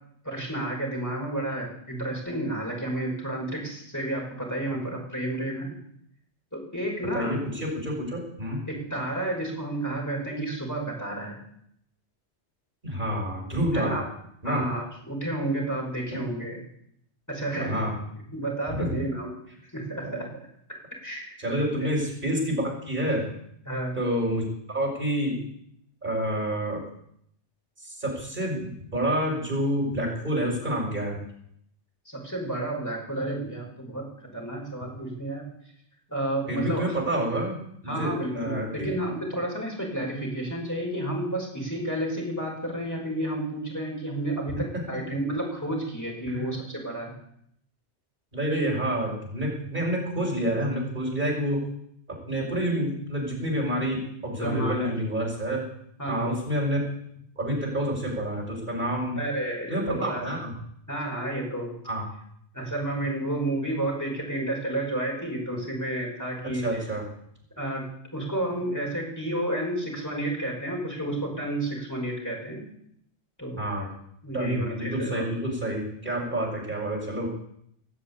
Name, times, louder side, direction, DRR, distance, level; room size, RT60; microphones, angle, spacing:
voice 1, 0.2-5.8 6.5-7.4 8.7-11.4 13.7-14.0 14.4-16.6 17.3-17.9 18.3-19.3 19.7-20.3 21.0-21.4 21.8-21.9 23.7-24.0 32.1-35.5 36.1-36.9 37.9-47.1 48.5-48.7 54.4-54.9 56.0-56.3 59.2-60.2 60.9-61.7 62.5-66.8 67.6-72.6 73.4-73.6 74.2-75.2, right 1 dB, 15° left, -2 dB, 5.7 m, -31 dB
voice 2, 7.1-8.6 12.8-14.0 14.4-14.7 16.1-16.2 17.6-17.9 18.7-18.9 20.0-20.2 21.4-23.2 24.0-25.4 26.0-26.8 27.8-31.2 36.5-37.6 37.8-39.0 46.3-46.5 48.3-51.6 52.3-55.6 56.1-56.8 57.4-59.2 59.7-60.5 61.8-62.0 66.5-67.0 73.6-73.9 74.3-77.3, equal, 45° right, -2 dB, 5.9 m, -28 dB
19.5 x 7.6 x 8.5 m, 0.71 s
omnidirectional pair, 1.2 m